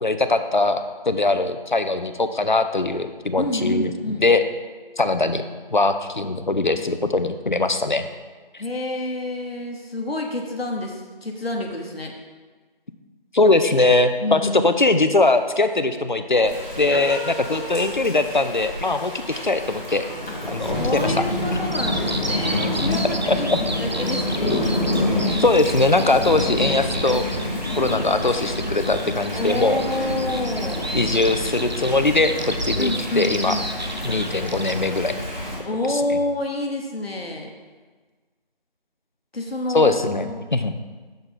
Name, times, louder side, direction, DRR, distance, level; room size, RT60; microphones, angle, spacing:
voice 1, 0.0-3.9 4.2-4.4 5.0-5.4 5.7-8.0 13.3-20.0 20.5-21.2 22.9-23.0 23.3-23.6 25.4-27.2 27.8-29.8 30.9-33.6 34.0-35.2 35.9-36.0 39.7-40.8, left 2 dB, 55° left, 9 dB, 0.5 m, -21 dB
voice 2, 3.4-4.2 8.6-12.1 14.2-14.7 16.9-17.9 20.3-24.6 29.3-30.9 32.8-33.8 35.6-37.5 39.3-40.0 40.2-40.4, left 1 dB, 80° left, 1 dB, 1.1 m, -28 dB
Thunder / Rain, 16.4-35.6, left 1 dB, ahead, 1.9 m, -28 dB
Bird vocalization bird call bird song, 21.7-34.7, right 1 dB, 50° right, 0.5 m, -33 dB
6.9 x 6.5 x 3.7 m, 1.4 s
figure-of-eight pair, 180°, 29 cm